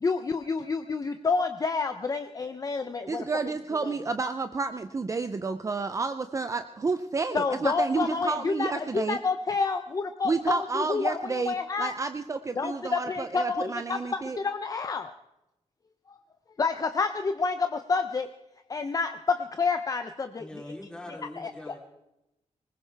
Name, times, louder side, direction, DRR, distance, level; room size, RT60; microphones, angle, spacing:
voice 1, 0.0-3.3 3.8-3.9 7.3-11.9 12.6-15.1 16.1-16.2 16.6-18.3 18.7-20.5 21.4-21.7, left 4 dB, 30° left, 8 dB, 0.6 m, -29 dB
voice 2, 3.1-9.2 10.2-14.4, right 4 dB, 25° right, 9 dB, 0.5 m, -30 dB
voice 3, 20.4-21.8, left 1 dB, 5° left, -2 dB, 3.2 m, -42 dB
20.0 x 20.0 x 3.4 m, 0.88 s
wide cardioid pair, 175°, 12 cm